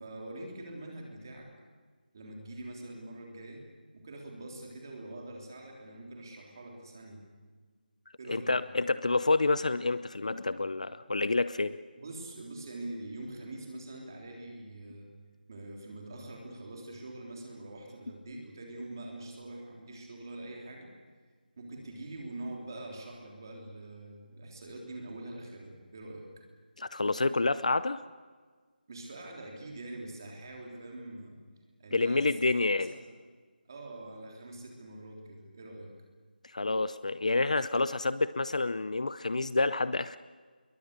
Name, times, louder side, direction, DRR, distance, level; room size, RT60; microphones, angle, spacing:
voice 1, 0.0-1.5 2.1-3.7 3.9-7.2 8.2-8.6 12.0-15.1 15.5-20.9 21.6-26.3 28.9-31.4 31.8-33.1 33.7-35.9, right 2 dB, 20° right, 0 dB, 3.5 m, -44 dB
voice 2, 8.3-11.8 26.8-28.0 31.9-32.9 36.5-40.2, left 3 dB, 45° left, 15 dB, 0.7 m, -28 dB
27.5 x 22.5 x 6.7 m, 1.5 s
figure-of-eight pair, 180°, 5 cm